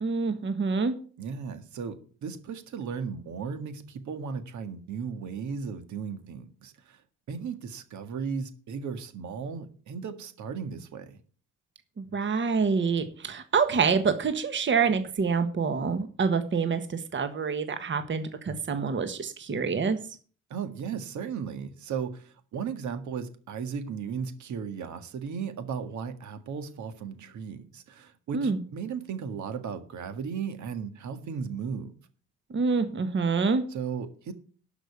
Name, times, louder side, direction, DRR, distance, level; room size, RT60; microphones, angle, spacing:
voice 1, 0.0-0.9 12.0-20.0 28.3-28.6 32.5-33.6, right 5 dB, 40° right, 9 dB, 1.4 m, -26 dB
voice 2, 1.2-7.0 7.3-11.2 18.5-18.6 20.5-31.9 33.7-34.3, right 6 dB, 70° right, 8 dB, 1.8 m, -36 dB
12.0 x 5.4 x 8.1 m, 0.42 s
cardioid pair, 90°, 30 cm